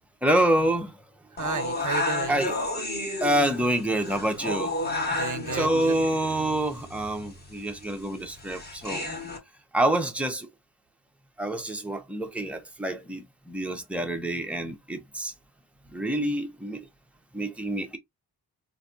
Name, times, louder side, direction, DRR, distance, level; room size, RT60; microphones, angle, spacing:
voice 1, 0.2-0.9 2.3-2.6 3.2-4.7 5.5-9.1 9.7-10.5 11.4-15.3 15.9-16.8 17.3-18.0, right 1 dB, 5° right, 0.5 m, -27 dB
voice 2, 1.3-2.5 5.1-5.9, right 6 dB, 50° right, 0.6 m, -33 dB
sound 1, 1.4-9.4, left 2 dB, 25° left, 1.2 m, -32 dB
4.0 x 2.6 x 2.4 m
wide cardioid pair, 170°, 39 cm